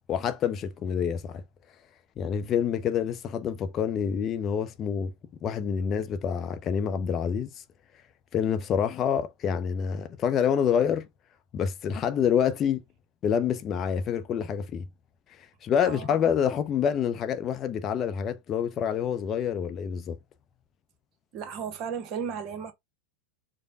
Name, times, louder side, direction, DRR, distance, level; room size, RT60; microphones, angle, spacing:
voice 1, 0.1-1.4 2.2-5.1 5.4-7.5 8.3-11.1 11.5-12.8 13.2-14.8 15.6-20.2, left 8 dB, 30° left, 0.5 m, -27 dB
voice 2, 21.3-22.7, right 7 dB, 40° right, 0.9 m, -34 dB
4.9 x 2.2 x 4.0 m
figure-of-eight pair, 90°, 0 cm